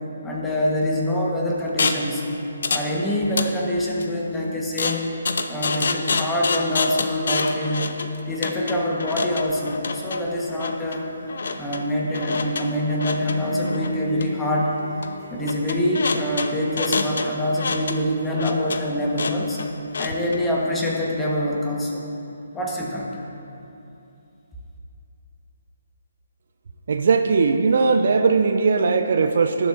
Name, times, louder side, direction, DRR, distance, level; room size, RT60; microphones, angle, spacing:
voice 1, 0.2-2.3 2.7-5.1 5.5-8.0 8.3-11.1 11.6-14.7 15.3-19.6 20.0-22.0 22.5-23.2, left 1 dB, 10° left, -3 dB, 1.3 m, -25 dB
sound 1, 1.8-2.1 2.6-2.9 3.2-4.0 4.8-20.4, left 4 dB, 60° left, 0.6 m, -28 dB
Bowed string instrument, 12.9-17.9, equal, 75° right, 2.4 m, -37 dB
voice 2, 26.9-29.7, right 4 dB, 55° right, 6 dB, 0.5 m, -19 dB
18.5 x 7.5 x 2.6 m, 2.8 s
figure-of-eight pair, 140°, 0 cm